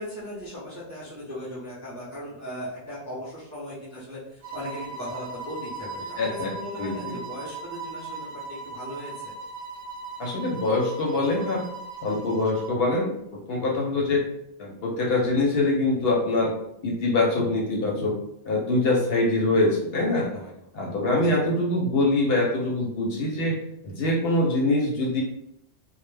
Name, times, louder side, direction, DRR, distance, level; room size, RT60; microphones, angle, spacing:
voice 1, 0.0-9.3 20.1-20.5 21.2-21.4, left 1 dB, 20° right, -8 dB, 0.5 m, -38 dB
sound 1, 4.4-12.8, right 3 dB, 60° right, 0.7 m, -38 dB
voice 2, 6.2-6.5 6.8-7.2 10.2-11.6 12.0-13.1 13.5-14.2 14.6-16.5 16.8-18.1 18.5-20.3 20.7-23.6 23.8-25.2, left 2 dB, 65° left, -2 dB, 0.7 m, -24 dB
2.1 x 2.1 x 3.1 m, 0.80 s
omnidirectional pair, 1.2 m